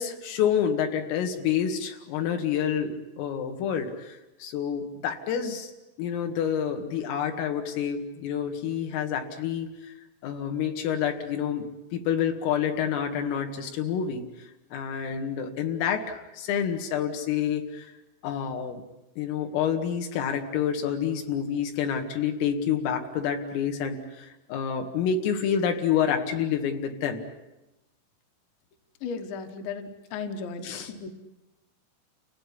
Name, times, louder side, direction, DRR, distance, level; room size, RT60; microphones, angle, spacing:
voice 1, 0.0-5.7 6.0-9.9 10.2-14.2 14.7-17.9 18.2-18.8 19.2-27.2 30.6-30.9, left 8 dB, 90° left, 4 dB, 4.6 m, -28 dB
voice 2, 29.0-31.1, left 5 dB, 70° left, 7 dB, 3.5 m, -35 dB
29.5 x 17.0 x 10.0 m, 0.99 s
omnidirectional pair, 5.7 m